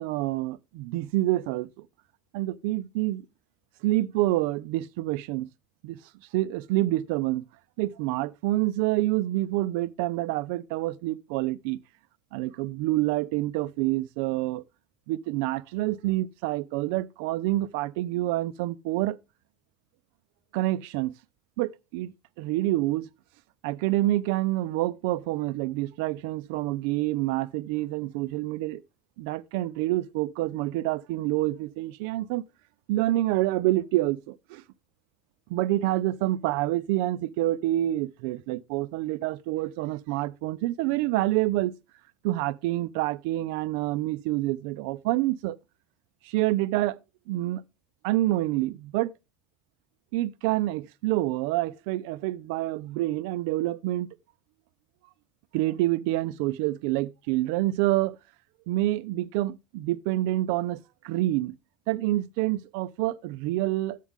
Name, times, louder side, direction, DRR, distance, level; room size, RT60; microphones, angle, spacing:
voice 1, 0.0-1.7 2.3-3.2 3.8-5.5 5.8-6.0 6.3-7.5 7.8-11.8 12.3-14.6 15.1-19.2 20.5-21.1 21.6-23.1 23.6-28.8 29.2-32.4 32.9-34.6 35.5-41.7 42.2-45.6 46.2-47.0 47.3-47.6 48.0-49.1 50.1-54.1 55.5-58.2 58.7-61.6 61.9-64.0, right 16 dB, 80° right, 0.6 m, -27 dB
13.0 x 8.4 x 3.6 m
cardioid pair, 165°, 0 cm